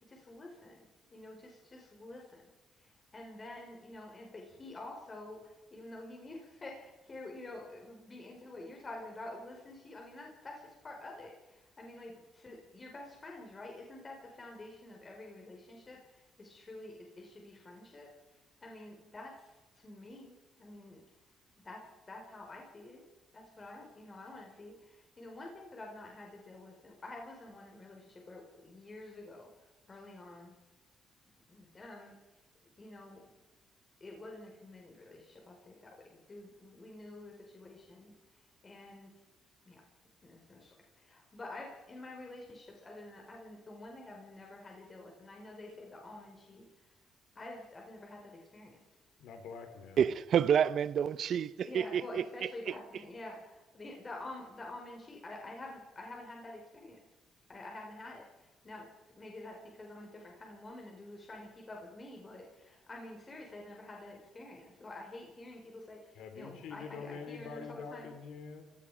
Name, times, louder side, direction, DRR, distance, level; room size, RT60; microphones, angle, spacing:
voice 1, 0.1-0.8 1.1-2.4 3.1-5.4 5.7-18.1 18.6-19.5 19.8-21.0 21.6-21.8 22.1-23.0 23.3-29.5 29.9-30.6 31.5-32.1 32.8-33.2 34.0-38.1 38.6-39.1 39.7-39.8 40.2-46.6 47.4-48.8 51.6-57.0 57.5-58.9 59.2-68.1, left 2 dB, 30° left, 5.3 m, -48 dB
voice 2, 49.2-50.0 66.1-68.6, left 5 dB, 85° left, 4.1 m, -45 dB
voice 3, 50.0-52.7, right 8 dB, 65° right, 0.9 m, -29 dB
28.0 x 18.0 x 5.1 m
cardioid pair, 90°, 0 cm